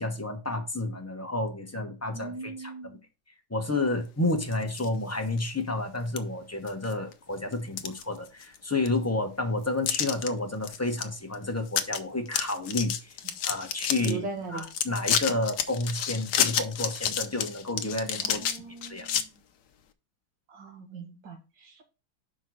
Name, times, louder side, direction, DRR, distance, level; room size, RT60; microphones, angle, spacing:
voice 1, 0.0-2.9 3.5-13.2 13.4-18.6 18.9-19.1, left 2 dB, 15° left, 0.5 m, -30 dB
voice 2, 2.1-3.0 13.2-13.3 14.0-14.7 18.2-19.4 20.5-21.8, right 4 dB, 60° right, 2.3 m, -40 dB
sound 1, 4.3-4.9 5.4-5.5 6.2-6.3 6.7-7.1 7.5-8.6 8.9-9.0 9.9-10.3 10.6-11.0 11.3-11.4 11.7-12.0 12.3-14.1 14.6-19.2, left 9 dB, 65° left, 1.2 m, -29 dB
5.4 x 5.3 x 6.2 m
omnidirectional pair, 2.2 m